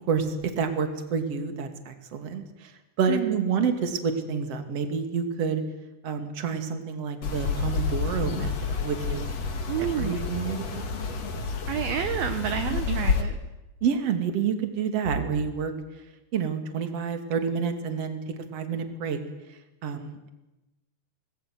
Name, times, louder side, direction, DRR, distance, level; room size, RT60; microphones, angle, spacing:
voice 1, 0.1-2.4 3.0-5.6 6.0-8.5 8.8-9.3 10.0-10.8 12.7-13.0 13.8-15.7 16.3-18.2 18.5-19.2 19.8-20.3, right 6 dB, 40° right, 7 dB, 2.9 m, -28 dB
voice 2, 3.1-3.5 9.7-10.2 11.7-13.4, right 10 dB, 70° right, 8 dB, 2.6 m, -29 dB
sound 1, 7.2-13.2, left 5 dB, 40° left, 2.9 m, -29 dB
25.0 x 20.0 x 9.4 m, 1.0 s
omnidirectional pair, 5.1 m